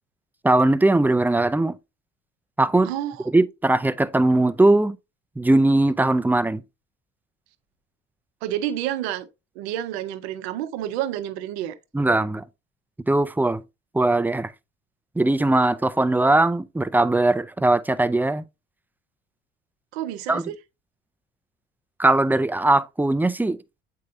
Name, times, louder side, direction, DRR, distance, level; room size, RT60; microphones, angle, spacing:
voice 1, 0.4-1.7 2.6-2.9 3.3-5.0 5.4-6.6 11.9-12.4 13.1-13.6 13.9-14.5 15.2-18.4 20.3-20.4 22.0-23.6, right 2 dB, 5° right, 0.5 m, -20 dB
voice 2, 2.8-3.3 8.4-9.3 9.5-11.8 19.9-20.5, right 12 dB, 80° right, 0.8 m, -29 dB
8.4 x 4.7 x 2.6 m
hypercardioid pair, 55°, 32 cm